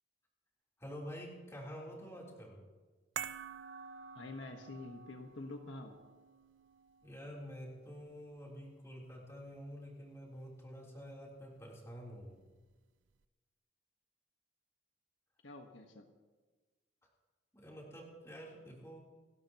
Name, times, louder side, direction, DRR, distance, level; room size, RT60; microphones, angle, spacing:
voice 1, 0.8-2.7 7.0-12.4 17.5-19.0, equal, 15° left, -3 dB, 3.7 m, -48 dB
sound 1, 3.2-9.6 9.8-10.0, right 8 dB, 75° right, 0.5 m, -49 dB
voice 2, 4.1-6.0 15.4-16.1, left 2 dB, 80° left, 4 dB, 1.5 m, -47 dB
29.0 x 12.5 x 3.0 m, 1.3 s
head